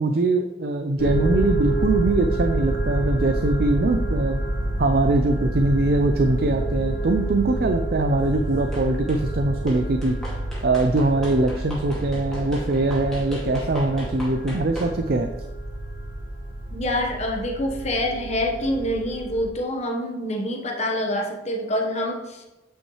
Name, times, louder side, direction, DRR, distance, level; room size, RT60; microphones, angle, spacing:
voice 1, 0.0-4.4 4.8-10.2 10.6-15.3, right 2 dB, 55° right, 6 dB, 0.5 m, -22 dB
sound 1, 1.0-19.5, right 1 dB, 70° left, 2.0 m, -28 dB
sound 2, 8.7-9.2 9.7-15.0, equal, 5° left, 2.2 m, -38 dB
voice 2, 16.7-22.4, left 1 dB, 40° left, 1 dB, 1.2 m, -26 dB
8.9 x 5.4 x 3.2 m, 1.0 s
head